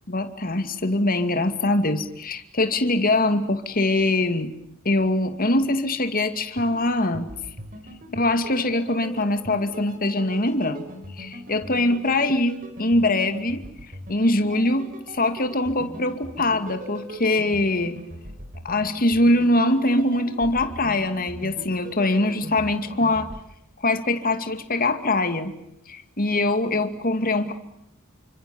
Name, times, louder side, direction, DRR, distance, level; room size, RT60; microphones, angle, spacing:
voice 1, 0.1-4.5 4.8-7.3 8.1-10.9 11.2-13.6 14.1-18.0 18.6-23.3 23.8-25.5 25.9-27.5, left 2 dB, 40° left, 8 dB, 2.4 m, -23 dB
sound 1, 6.5-23.4, equal, 40° right, 4.2 m, -40 dB
29.5 x 26.0 x 7.1 m, 0.78 s
head